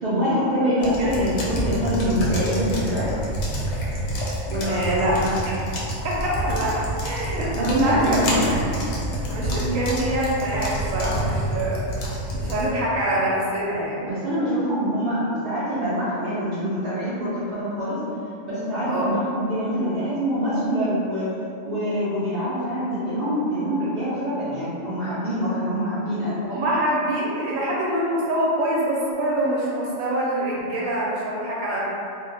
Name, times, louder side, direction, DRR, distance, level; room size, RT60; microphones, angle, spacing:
voice 1, 0.0-3.1 4.5-5.3 7.5-8.5 14.0-18.0 18.4-21.3 21.6-26.4, equal, 50° right, -12 dB, 0.6 m, -25 dB
sound 1, 0.8-12.7, right 1 dB, 65° left, 0.8 m, -28 dB
voice 2, 4.7-5.5 6.0-14.1 18.8-19.1 26.5-31.8, right 1 dB, 85° right, -6 dB, 1.0 m, -25 dB
2.4 x 2.1 x 3.3 m, 2.7 s
omnidirectional pair, 1.3 m